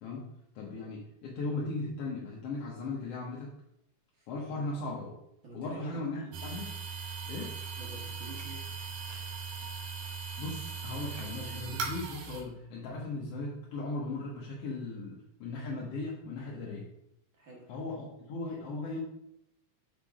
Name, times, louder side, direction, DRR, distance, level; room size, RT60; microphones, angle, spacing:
voice 1, 0.0-3.5 4.3-5.1 5.5-6.7 7.3-7.5 10.4-16.9 17.7-19.0, left 2 dB, 65° left, -4 dB, 1.8 m, -37 dB
voice 2, 4.2-4.7 5.4-6.3 7.8-8.6 17.4-17.7, right 2 dB, 45° right, -3 dB, 2.1 m, -48 dB
sound 1, 6.3-12.4, right 5 dB, 85° right, 2.5 m, -39 dB
6.1 x 4.4 x 4.8 m, 0.80 s
omnidirectional pair, 3.3 m